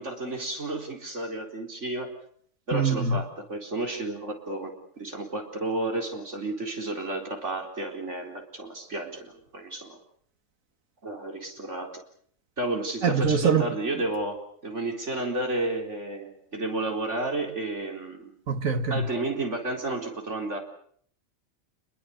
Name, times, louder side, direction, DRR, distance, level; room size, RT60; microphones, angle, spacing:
voice 1, 0.0-2.1 2.7-10.0 11.0-11.9 12.6-14.4 14.6-18.3 18.9-20.6, right 2 dB, 60° right, 4.6 m, -32 dB
voice 2, 2.7-3.2 13.0-13.7 18.5-19.1, right 5 dB, 80° right, 2.1 m, -23 dB
27.5 x 22.0 x 6.8 m
omnidirectional pair, 1.4 m